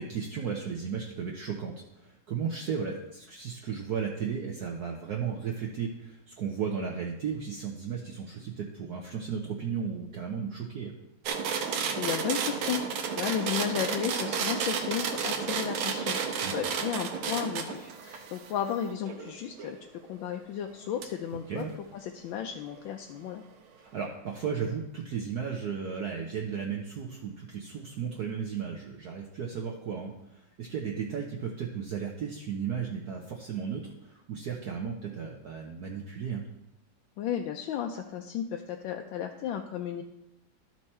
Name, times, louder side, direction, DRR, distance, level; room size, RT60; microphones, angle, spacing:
voice 1, 0.0-10.9 16.4-16.6 21.5-21.7 23.8-36.5, right 6 dB, 60° right, 0 dB, 1.2 m, -35 dB
sound 1, 11.3-19.8 21.0-21.1, right 6 dB, 85° right, 1.7 m, -32 dB
voice 2, 11.7-12.8 13.1-19.8 20.1-21.6 21.9-23.4 37.2-40.0, left 9 dB, 75° left, 3 dB, 1.3 m, -34 dB
12.5 x 4.5 x 4.2 m, 0.86 s
omnidirectional pair, 2.2 m